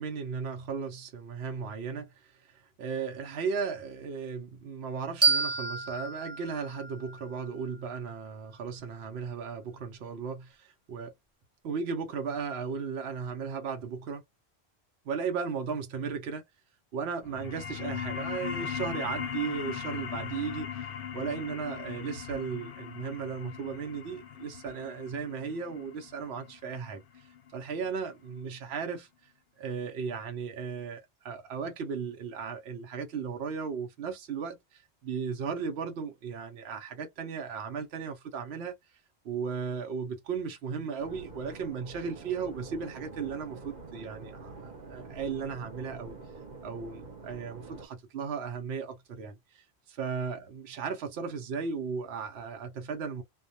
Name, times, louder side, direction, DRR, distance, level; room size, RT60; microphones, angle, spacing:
voice 1, 0.0-11.1 11.6-14.2 15.0-16.4 16.9-38.8 39.2-46.1 46.6-49.6 50.0-53.2, right 6 dB, 75° right, 0.9 m, -36 dB
sound 1, 5.2-8.0, right 4 dB, 15° right, 0.8 m, -30 dB
sound 2, 17.2-28.3, left 8 dB, 60° left, 0.7 m, -39 dB
sound 3, 41.0-47.9, right 3 dB, 55° right, 1.0 m, -46 dB
2.3 x 2.2 x 2.6 m
omnidirectional pair, 1.1 m